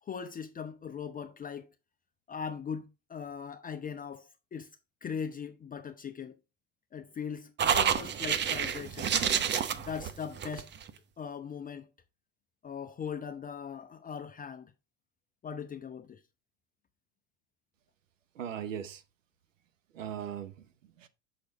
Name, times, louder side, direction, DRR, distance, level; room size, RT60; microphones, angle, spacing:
voice 1, 0.0-1.7 2.3-4.7 5.0-6.4 6.9-9.1 9.7-10.7 11.2-11.9 12.6-14.7 15.4-16.2, left 7 dB, 20° left, 0.7 m, -40 dB
sound 1, 7.6-10.9, right 8 dB, 30° right, 0.8 m, -29 dB
voice 2, 18.3-19.0 19.9-21.1, right 9 dB, 85° right, 1.0 m, -39 dB
6.6 x 6.0 x 4.0 m
hypercardioid pair, 85°, 37 cm